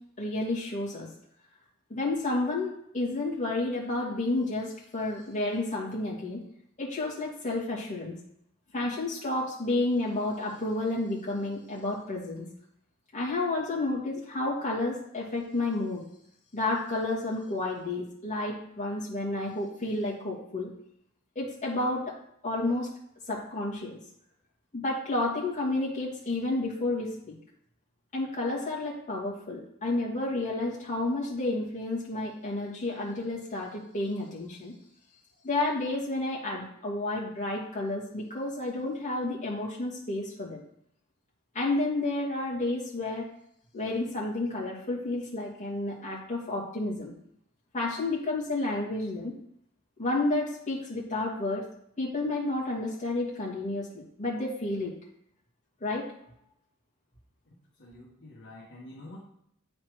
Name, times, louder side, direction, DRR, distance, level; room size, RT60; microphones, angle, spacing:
voice 1, 0.2-1.1 1.9-6.4 6.8-8.1 8.7-12.4 13.1-16.0 16.5-20.7 21.3-22.1 22.4-22.9 23.3-24.0 24.7-27.1 28.1-34.7 35.4-40.6 41.5-43.3 43.7-47.1 47.7-49.3 50.0-51.6 52.0-54.9 55.8-56.1, left 2 dB, 35° left, -5 dB, 2.5 m, -31 dB
voice 2, 57.8-59.2, left 1 dB, 60° left, -5 dB, 1.5 m, -47 dB
8.6 x 4.3 x 4.8 m, 0.72 s
head